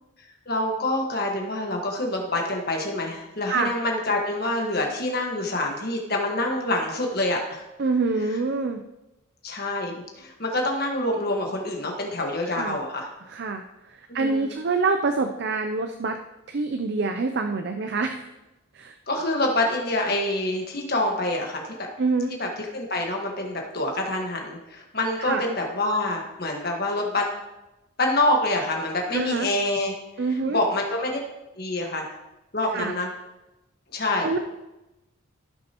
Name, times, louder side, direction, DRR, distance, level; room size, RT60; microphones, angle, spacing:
voice 1, 0.5-7.6 9.4-13.1 14.1-14.5 19.1-21.6 22.4-27.3 28.0-29.9 30.5-31.2 31.6-32.1 32.5-33.1 33.9-34.3, left 1 dB, 45° left, 1 dB, 1.5 m, -26 dB
voice 2, 7.8-8.8 12.5-12.8 13.3-16.2 16.5-18.3 18.7-18.9 22.0-22.3 25.2-25.4 29.1-29.5 30.2-30.6 32.7-32.9 34.2-34.4, right 3 dB, 50° right, 6 dB, 0.5 m, -26 dB
15.0 x 6.5 x 3.0 m, 0.99 s
head